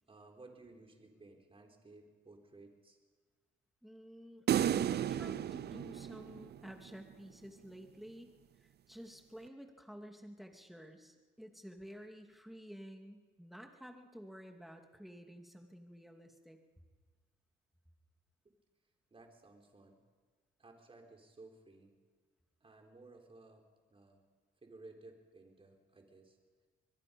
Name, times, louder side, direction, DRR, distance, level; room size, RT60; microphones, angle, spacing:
voice 1, 0.1-3.0 18.4-18.5 19.1-20.0 20.6-21.9 22.6-24.2 24.6-26.4, right 3 dB, 30° right, 2 dB, 4.3 m, -57 dB
voice 2, 3.8-8.3 8.6-16.6, equal, ahead, 3 dB, 2.5 m, -51 dB
sound 1, 4.5-6.9, right 10 dB, 55° right, 0.6 m, -33 dB
25.0 x 21.5 x 5.4 m, 1.4 s
cardioid pair, 90°, 20 cm